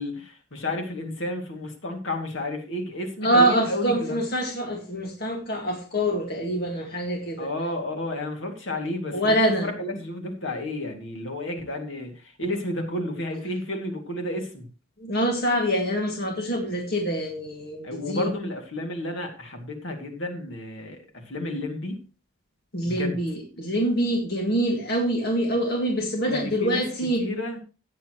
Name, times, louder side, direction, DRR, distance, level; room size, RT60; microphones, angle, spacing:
voice 1, 0.0-4.2 7.4-14.7 17.8-22.0 22.8-23.2 26.3-26.9 27.2-27.6, left 1 dB, 70° left, 3 dB, 2.5 m, -31 dB
voice 2, 3.2-7.5 9.1-9.7 15.0-18.3 22.7-27.2, right 1 dB, 50° left, 1 dB, 1.9 m, -25 dB
14.0 x 9.0 x 3.1 m, 0.34 s
head